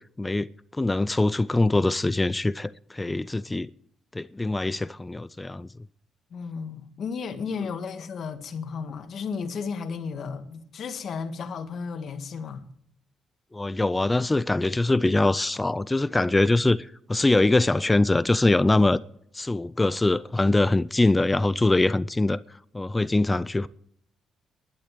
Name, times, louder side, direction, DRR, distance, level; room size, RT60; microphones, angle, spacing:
voice 1, 0.2-0.5 0.8-3.7 4.1-5.7 13.5-19.0 19.3-22.4 22.7-23.7, left 2 dB, 15° left, 0.5 m, -23 dB
voice 2, 6.3-12.7, left 5 dB, 60° left, 1.7 m, -34 dB
12.0 x 11.5 x 7.7 m
cardioid pair, 90°, 0 cm